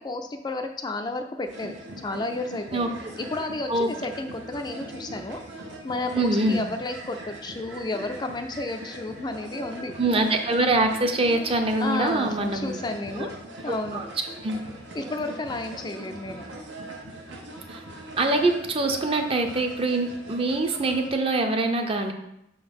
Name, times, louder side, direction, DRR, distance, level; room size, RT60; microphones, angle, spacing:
voice 1, 0.0-1.7 2.0-2.9 3.2-5.4 5.8-9.9 11.8-14.0 15.0-16.5, left 2 dB, 25° left, 5 dB, 0.4 m, -32 dB
sound 1, 1.4-21.1, right 1 dB, 90° right, 1.3 m, -41 dB
voice 2, 6.1-6.6 10.0-12.8 13.2-13.3 13.7-14.0 14.4-14.6 17.7-17.8 18.2-22.1, right 2 dB, 30° right, 5 dB, 0.6 m, -24 dB
5.8 x 3.9 x 5.3 m, 0.81 s
head